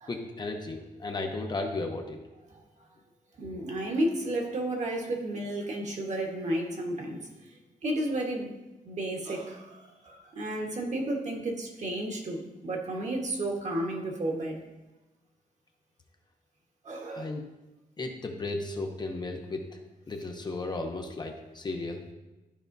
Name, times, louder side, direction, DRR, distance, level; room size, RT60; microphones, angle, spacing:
voice 1, 0.1-2.2 17.1-17.4 18.0-19.6 20.1-22.1, left 2 dB, 30° left, 4 dB, 0.6 m, -34 dB
voice 2, 3.4-7.2 7.8-8.5 8.8-14.6 16.8-17.3, right 1 dB, 50° right, 1 dB, 1.2 m, -32 dB
12.0 x 4.9 x 2.6 m, 1.1 s
wide cardioid pair, 170°, 15 cm